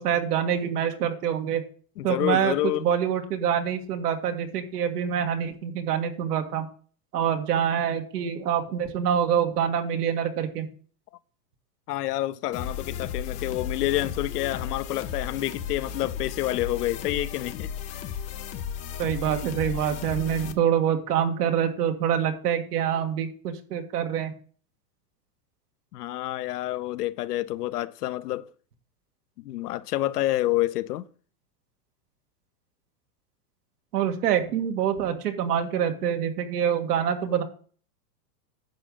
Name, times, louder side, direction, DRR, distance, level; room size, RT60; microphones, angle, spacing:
voice 1, 0.0-1.6 2.0-6.7 7.1-10.7 19.0-24.3 33.9-37.4, right 9 dB, 80° right, 1.9 m, -26 dB
voice 2, 2.0-2.9 11.9-17.7 25.9-28.5 29.4-31.1, left 15 dB, 80° left, 0.8 m, -28 dB
sound 1, 12.5-20.5, left 8 dB, 20° left, 0.4 m, -34 dB
10.5 x 7.1 x 3.9 m
supercardioid pair, 140°, 47 cm